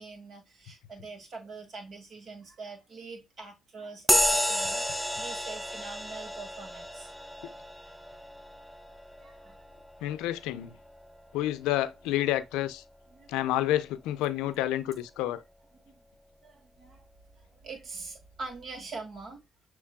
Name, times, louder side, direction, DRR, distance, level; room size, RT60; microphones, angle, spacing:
voice 1, 0.0-7.1 9.2-9.6 13.1-13.3 15.8-16.0 16.4-17.0 17.6-19.4, right 4 dB, 55° right, 2.0 m, -44 dB
sound 1, 4.1-12.0, equal, ahead, 0.5 m, -32 dB
voice 2, 10.0-10.8 11.3-12.8 13.3-15.4, left 13 dB, 85° left, 0.5 m, -29 dB
6.7 x 3.1 x 2.2 m
supercardioid pair, 65°, 0 cm